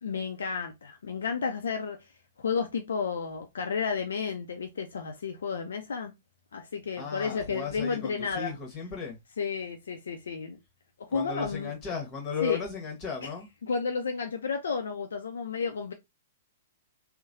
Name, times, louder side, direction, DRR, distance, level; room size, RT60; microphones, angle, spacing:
voice 1, 0.0-2.1 2.4-6.1 6.5-8.5 9.4-10.6 11.0-11.7 12.4-12.6 13.2-13.3 13.6-15.9, left 5 dB, 65° left, 0.4 m, -32 dB
voice 2, 7.0-9.2 11.1-13.5, left 6 dB, 25° left, 1.1 m, -35 dB
3.0 x 2.0 x 2.6 m
figure-of-eight pair, 110°, 0 cm